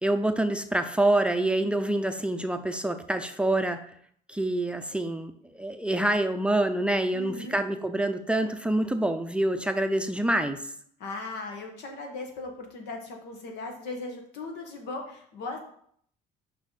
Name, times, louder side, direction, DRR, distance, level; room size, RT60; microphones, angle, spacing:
voice 1, 0.0-3.8 4.3-10.6, right 1 dB, 5° right, 7 dB, 0.5 m, -26 dB
voice 2, 7.1-7.6 11.0-15.6, left 3 dB, 80° left, 3 dB, 1.6 m, -38 dB
5.9 x 5.7 x 4.2 m, 0.64 s
cardioid pair, 110°, 17 cm